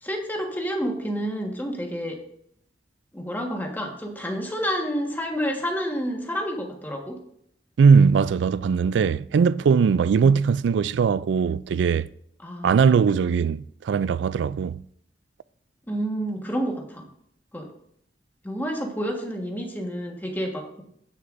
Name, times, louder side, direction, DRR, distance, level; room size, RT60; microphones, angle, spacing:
voice 1, 0.0-2.2 3.1-7.2 12.4-12.8 15.9-17.1 17.5-17.7 18.4-20.8, equal, 10° left, 1.4 m, -29 dB
voice 2, 7.8-12.1 12.6-14.8, right 6 dB, 85° right, 0.3 m, -20 dB
17.5 x 6.6 x 2.6 m
head